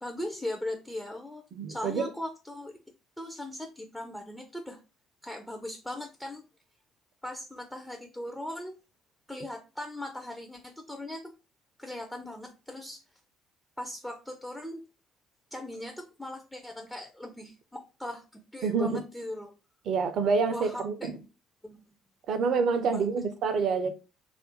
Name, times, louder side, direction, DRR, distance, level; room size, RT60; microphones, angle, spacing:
voice 1, 0.0-1.4 1.7-2.8 3.2-4.8 5.2-6.5 7.2-8.8 9.3-11.3 11.8-13.0 13.8-14.8 15.5-19.5 20.5-21.1 21.6-21.8 22.9-23.1, left 1 dB, 5° left, 0.4 m, -39 dB
voice 2, 1.5-2.1 18.6-19.0 19.9-21.2 22.3-23.9, right 5 dB, 55° right, 0.4 m, -27 dB
2.4 x 2.1 x 3.9 m
figure-of-eight pair, 50°, 0 cm